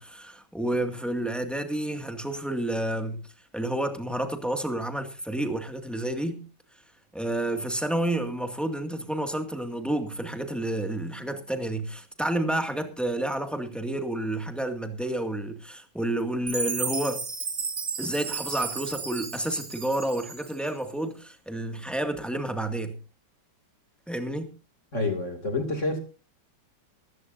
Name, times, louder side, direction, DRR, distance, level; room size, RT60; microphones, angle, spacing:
voice 1, 0.0-3.2 3.5-6.4 7.1-17.2 18.0-23.0 24.1-24.5, right 1 dB, ahead, 1.9 m, -30 dB
Chime, 16.5-20.7, right 4 dB, 35° right, 1.3 m, -33 dB
voice 2, 24.9-26.0, left 2 dB, 40° left, 3.0 m, -28 dB
19.0 x 15.5 x 2.7 m
omnidirectional pair, 2.1 m